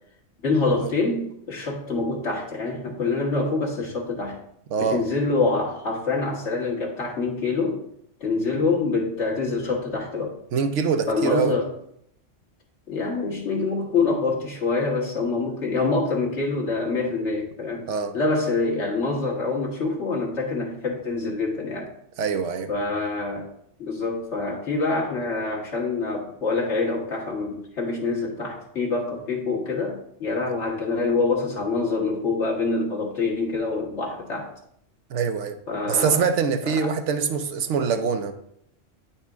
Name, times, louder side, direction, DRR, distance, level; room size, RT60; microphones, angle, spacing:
voice 1, 0.4-4.4 4.8-7.8 8.2-10.3 11.1-11.7 12.9-17.9 18.1-21.9 22.7-23.5 23.8-34.5 35.7-36.2 36.6-37.0, left 3 dB, 65° left, -2 dB, 1.7 m, -26 dB
voice 2, 4.7-5.0 10.5-11.5 17.9-18.1 22.2-22.7 35.1-35.6 35.9-38.3, right 6 dB, 70° right, 8 dB, 0.9 m, -24 dB
9.4 x 4.3 x 3.5 m, 0.72 s
omnidirectional pair, 1.3 m